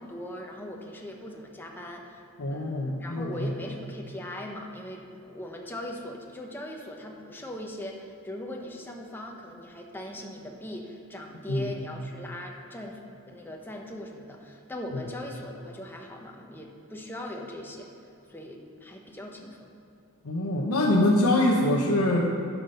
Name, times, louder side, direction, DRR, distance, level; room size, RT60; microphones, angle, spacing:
voice 1, 0.0-13.0 13.3-17.9 18.3-19.7, left 1 dB, 10° left, 0 dB, 0.9 m, -40 dB
voice 2, 2.4-3.5 11.5-11.6 20.2-22.2, left 1 dB, 80° left, -2 dB, 0.9 m, -24 dB
11.0 x 6.0 x 5.5 m, 2.7 s
head